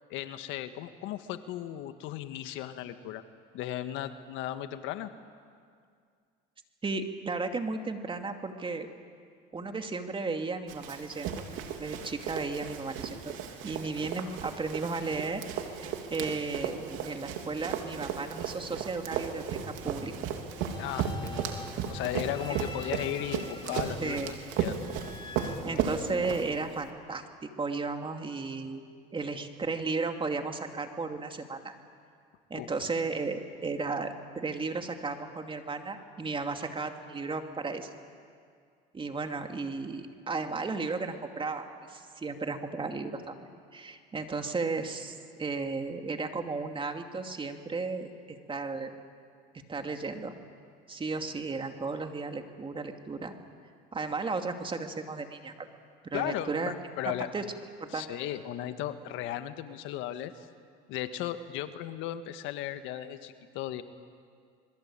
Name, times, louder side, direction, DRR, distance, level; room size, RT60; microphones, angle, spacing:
voice 1, 0.1-3.2 3.5-5.1 20.8-21.4 21.9-24.8 32.5-32.7 56.1-57.3 57.9-60.5 60.9-63.8, left 12 dB, 70° left, 10 dB, 1.6 m, -36 dB
voice 2, 6.8-8.9 9.5-11.4 11.8-13.3 13.6-15.4 15.8-19.6 19.8-20.1 24.0-24.3 25.6-27.2 27.6-28.8 29.1-31.7 32.5-37.9 38.9-48.9 49.7-50.3 50.9-53.3 53.9-55.7 56.0-56.7 57.3-57.4 57.8-58.1, right 4 dB, 25° right, 5 dB, 2.6 m, -34 dB
Run, 10.7-26.8, right 7 dB, 70° right, 3.1 m, -35 dB
sound 1, 20.5-26.6, left 4 dB, 20° left, 2.4 m, -47 dB
26.0 x 22.0 x 8.9 m, 2.2 s
supercardioid pair, 90°, 21 cm